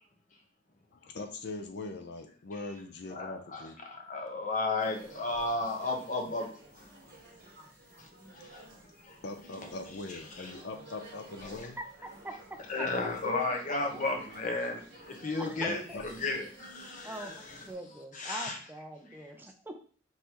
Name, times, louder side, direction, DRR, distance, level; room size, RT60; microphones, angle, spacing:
voice 1, 0.9-3.8 7.1-7.2 9.2-11.8 15.7-16.0, left 2 dB, 65° left, 0.5 m, -41 dB
voice 2, 3.1-6.5 6.7-6.8 8.0-8.1 8.3-8.6 9.0-9.2 10.1-10.5 11.4-11.5 12.7-17.3 18.1-18.6, left 3 dB, 45° left, 1.0 m, -34 dB
sound 1, 4.8-17.7, right 1 dB, 55° right, 1.6 m, -53 dB
voice 3, 15.4-16.0 17.0-19.8, right 1 dB, 10° right, 0.5 m, -43 dB
5.4 x 3.2 x 3.0 m
head